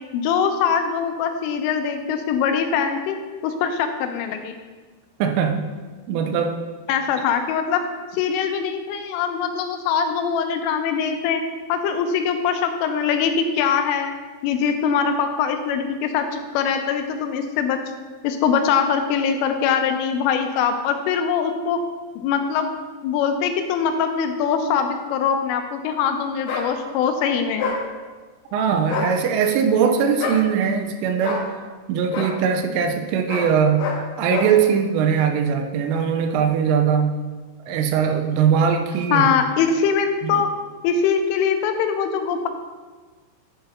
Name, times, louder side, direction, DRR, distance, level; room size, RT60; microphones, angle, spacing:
voice 1, 0.1-3.2 3.4-4.5 6.9-7.8 8.1-11.4 11.7-14.1 14.4-17.8 18.2-21.8 22.2-22.7 23.0-27.7 39.1-40.5 40.8-42.5, left 7 dB, 85° left, 6 dB, 3.2 m, -22 dB
voice 2, 5.2-5.7 6.1-6.6 28.5-31.5 31.9-37.2 37.7-39.3 40.2-40.4, right 7 dB, 90° right, 6 dB, 3.2 m, -21 dB
sound 1, 26.5-26.7 27.6-27.8 28.8-29.1 30.2-30.4 31.2-31.5 32.1-32.3 33.3-33.5 33.8-34.0 34.3-34.5, left 4 dB, 65° left, 2.5 m, -26 dB
10.5 x 4.1 x 5.5 m, 1.4 s
omnidirectional pair, 5.7 m